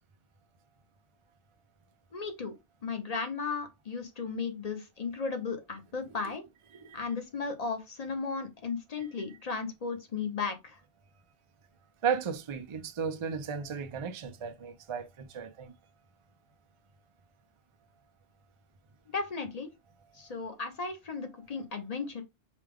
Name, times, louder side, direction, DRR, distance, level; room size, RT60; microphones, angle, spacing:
voice 1, 2.1-2.5 2.8-6.5 6.9-10.8 19.1-19.7 20.1-22.2, left 4 dB, 40° left, 0.8 m, -35 dB
voice 2, 12.0-15.7, right 7 dB, 50° right, 0.3 m, -34 dB
5.0 x 2.3 x 3.4 m
omnidirectional pair, 1.2 m